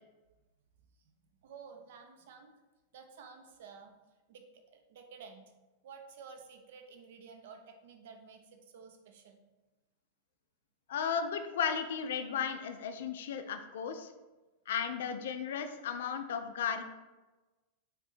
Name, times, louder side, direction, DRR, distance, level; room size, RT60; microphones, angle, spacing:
voice 1, 1.4-2.5 2.9-3.9 4.3-5.5 5.8-9.4, right 5 dB, 55° right, 5 dB, 0.5 m, -52 dB
voice 2, 10.9-14.1 14.7-16.8, left 7 dB, 60° left, 8 dB, 0.4 m, -35 dB
4.3 x 2.6 x 4.2 m, 1.1 s
figure-of-eight pair, 90°, 0 cm